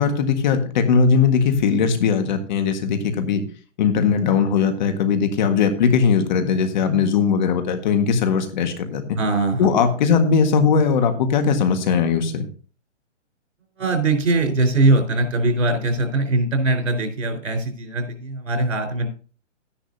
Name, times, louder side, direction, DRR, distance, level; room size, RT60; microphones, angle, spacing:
voice 1, 0.0-3.4 3.8-9.2 9.6-12.5, left 6 dB, 35° left, 7 dB, 1.6 m, -19 dB
voice 2, 9.2-9.8 13.8-19.1, right 2 dB, 90° right, 5 dB, 4.2 m, -21 dB
12.5 x 10.0 x 2.8 m, 0.40 s
hypercardioid pair, 160°, 37 cm